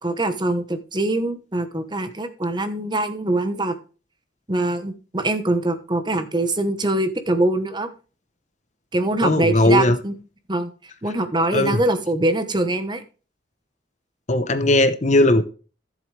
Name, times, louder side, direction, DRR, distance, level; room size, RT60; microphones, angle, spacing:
voice 1, 0.0-3.8 4.5-7.9 8.9-10.1 10.5-10.7 11.0-13.0, right 2 dB, 25° right, 10 dB, 1.1 m, -23 dB
voice 2, 9.2-10.0 11.5-11.8 14.3-15.4, left 1 dB, 40° left, 11 dB, 0.9 m, -18 dB
14.0 x 7.6 x 3.3 m, 0.36 s
head